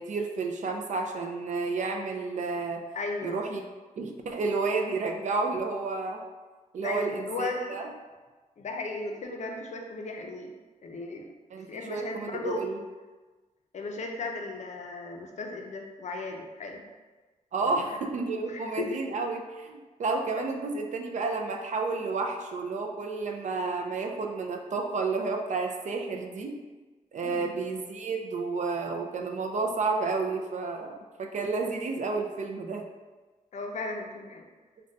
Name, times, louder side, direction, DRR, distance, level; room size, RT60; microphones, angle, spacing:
voice 1, 0.0-2.8 3.2-3.7 4.0-6.2 6.7-7.9 11.5-12.8 17.5-26.6 27.1-32.9, right 4 dB, 55° right, 3 dB, 0.4 m, -31 dB
voice 2, 2.9-3.4 6.8-7.8 8.6-10.5 10.8-11.3 11.7-12.6 13.7-16.8 17.6-18.0 18.5-18.9 27.2-27.5 33.5-34.5, left 3 dB, 55° left, 2 dB, 0.4 m, -36 dB
5.1 x 2.2 x 2.5 m, 1.3 s
wide cardioid pair, 180°, 15 cm